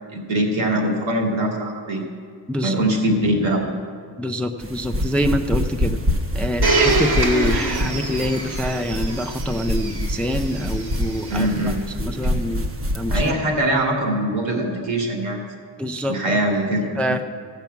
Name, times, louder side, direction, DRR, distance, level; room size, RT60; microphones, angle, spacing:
voice 1, 0.1-2.0 2.6-3.7 11.3-11.8 13.1-15.4 16.1-16.9, right 1 dB, 80° right, 0 dB, 2.4 m, -22 dB
voice 2, 2.5-2.8 4.2-6.0 6.3-11.5 12.0-12.7 12.9-13.2 15.8-16.4 17.0-17.2, left 1 dB, 5° left, 7 dB, 0.3 m, -25 dB
sound 1, 4.6-13.3, left 1 dB, 30° right, 0.9 m, -26 dB
Domestic sounds home sounds, 6.6-11.5 12.2-12.3, right 3 dB, 55° right, 1.6 m, -25 dB
14.5 x 5.9 x 8.1 m, 2.1 s
wide cardioid pair, 165°, 45 cm